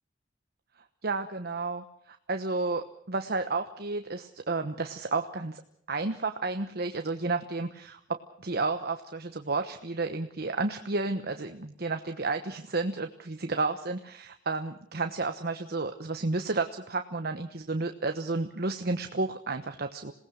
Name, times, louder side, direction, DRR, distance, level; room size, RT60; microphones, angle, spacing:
voice 1, 1.0-5.6 5.9-20.1, right 3 dB, 55° right, 7 dB, 1.2 m, -32 dB
27.5 x 18.5 x 6.5 m, 0.70 s
head